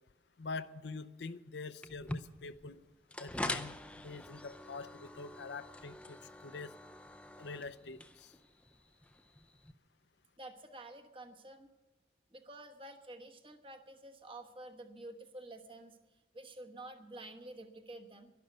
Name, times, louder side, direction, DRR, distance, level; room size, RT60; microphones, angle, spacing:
voice 1, 0.4-2.8 3.2-6.7 7.4-8.4, left 4 dB, 75° left, 13 dB, 0.6 m, -45 dB
sound 1, 1.8-9.7, left 1 dB, 5° left, 0.5 m, -45 dB
voice 2, 10.4-11.7 12.3-16.0 16.3-18.3, right 1 dB, 30° right, 5 dB, 1.1 m, -50 dB
11.5 x 11.5 x 8.0 m, 1.2 s
head